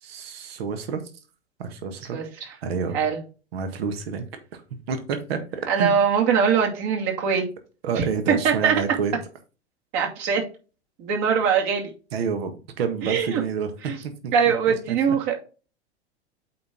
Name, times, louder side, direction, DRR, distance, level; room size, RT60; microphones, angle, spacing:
voice 1, 0.0-1.0 1.6-2.2 2.6-3.0 3.5-4.6 4.9-6.0 7.8-9.1 12.1-13.7 14.0-14.3 14.7-14.8, right 6 dB, 60° right, 8 dB, 1.7 m, -29 dB
voice 2, 2.1-2.5 2.9-3.2 5.7-7.5 8.0-8.7 9.9-10.4 11.0-11.9 13.0-13.4 13.8-14.0 14.3-15.4, right 6 dB, 45° right, 1 dB, 2.5 m, -22 dB
8.4 x 4.5 x 3.7 m, 0.34 s
figure-of-eight pair, 95°, 34 cm